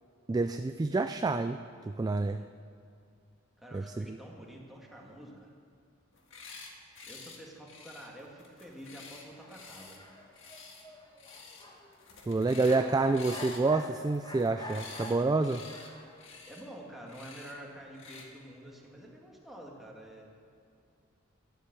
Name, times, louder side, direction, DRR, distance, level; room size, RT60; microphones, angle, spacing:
voice 1, 0.3-1.6 1.9-2.4 3.7-4.2 12.3-15.6, right 3 dB, 20° right, 9 dB, 0.3 m, -28 dB
voice 2, 3.6-5.5 7.1-10.0 16.4-20.3, right 1 dB, ahead, -2 dB, 2.0 m, -48 dB
sound 1, 6.1-6.7 7.0-7.4 7.7-10.0 10.3-10.8 11.2-11.7 11.9-12.8 13.1-15.1 15.4-15.9 16.2-16.6 17.1-17.5 17.9-18.3, left 4 dB, 70° left, 1.9 m, -49 dB
sound 2, 9.3-16.4, left 1 dB, 20° left, 1.4 m, -47 dB
11.5 x 11.5 x 6.9 m, 2.4 s
head